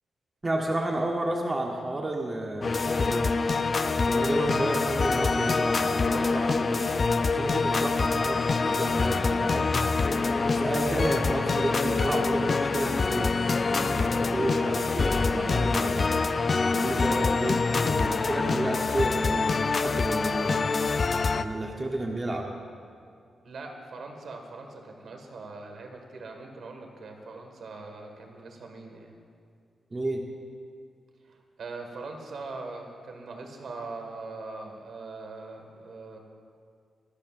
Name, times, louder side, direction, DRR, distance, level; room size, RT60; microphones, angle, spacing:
voice 1, 0.4-3.4 4.0-6.9 7.3-9.7 10.5-13.3 13.6-16.2 16.7-20.7 21.4-22.5 29.9-30.2, right 1 dB, 20° right, 0 dB, 0.9 m, -31 dB
sound 1, 2.6-21.4, left 4 dB, 35° left, 0.4 m, -25 dB
voice 2, 23.4-29.1 31.2-36.2, right 3 dB, 65° right, 3 dB, 1.8 m, -41 dB
24.0 x 11.5 x 2.5 m, 2.2 s
wide cardioid pair, 150°, 0 cm